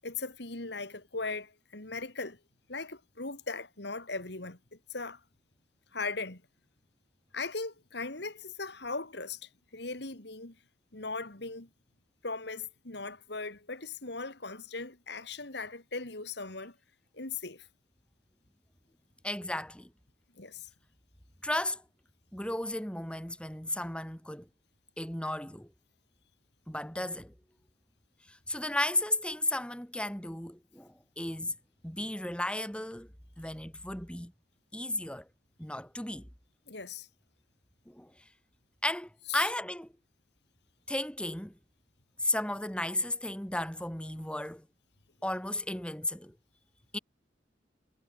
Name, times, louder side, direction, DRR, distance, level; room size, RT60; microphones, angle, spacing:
voice 1, 0.0-2.4 2.7-5.2 5.9-6.4 7.3-10.6 10.9-11.7 12.2-16.8 17.1-17.7 20.4-20.7 36.7-37.1 39.3-39.5, left 3 dB, 65° left, 3.2 m, -39 dB
voice 2, 19.2-19.9 21.4-21.8 22.3-24.5 25.0-25.7 26.7-27.3 28.3-31.5 31.8-33.1 33.4-34.3 34.7-35.3 35.6-36.3 37.9-38.1 38.8-39.9 40.9-41.5 42.2-44.7 45.2-46.3 46.9-47.0, left 1 dB, 5° left, 3.8 m, -34 dB
head